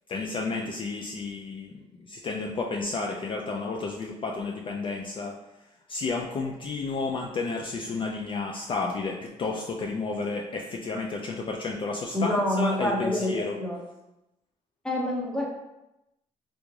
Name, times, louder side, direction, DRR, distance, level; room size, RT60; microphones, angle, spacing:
voice 1, 0.1-5.3 5.9-13.6, left 3 dB, 40° left, 0 dB, 0.3 m, -31 dB
voice 2, 12.1-13.8 14.8-15.5, left 1 dB, 5° left, -2 dB, 0.7 m, -27 dB
3.4 x 2.5 x 3.1 m, 0.93 s
cardioid pair, 110°, 13 cm